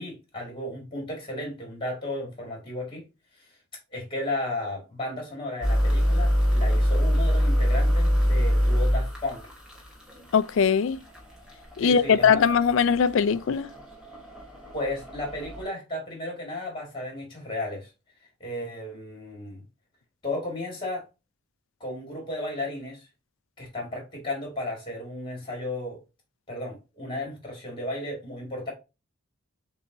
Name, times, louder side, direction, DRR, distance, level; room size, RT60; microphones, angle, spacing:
voice 1, 0.0-3.0 3.4-3.5 3.9-9.4 11.8-12.4 14.7-17.9 18.4-19.6 20.2-21.0 21.8-23.1 23.6-26.0 26.5-28.7, left 1 dB, 20° left, 1.8 m, -34 dB
sound 1, 5.6-15.6, equal, 5° right, 1.1 m, -25 dB
voice 2, 10.3-11.0 11.8-13.7, left 6 dB, 60° left, 0.3 m, -21 dB
6.7 x 2.8 x 2.5 m
head